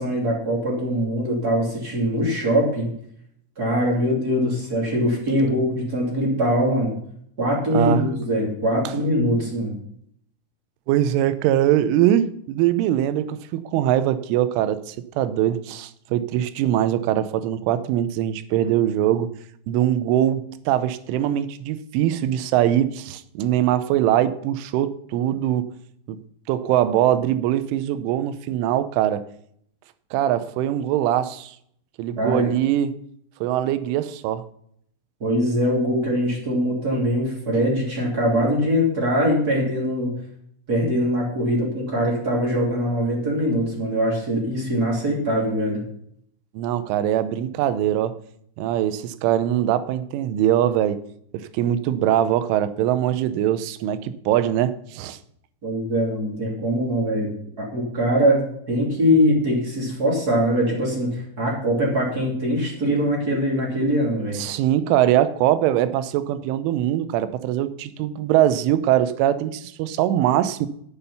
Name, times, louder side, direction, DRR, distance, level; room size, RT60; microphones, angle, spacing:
voice 1, 0.0-2.9 3.6-6.9 7.4-9.7 32.2-32.4 35.2-40.1 40.7-45.8 55.6-57.3 57.6-64.4, equal, 25° right, 2.6 m, -22 dB
voice 2, 7.7-8.1 10.9-19.3 19.7-25.7 26.1-26.2 26.5-29.2 30.1-31.6 32.0-33.0 33.4-34.4 46.5-48.1 48.6-51.0 51.3-55.2 64.3-70.7, right 11 dB, 85° right, 3.2 m, -22 dB
10.5 x 9.0 x 5.6 m
omnidirectional pair, 5.5 m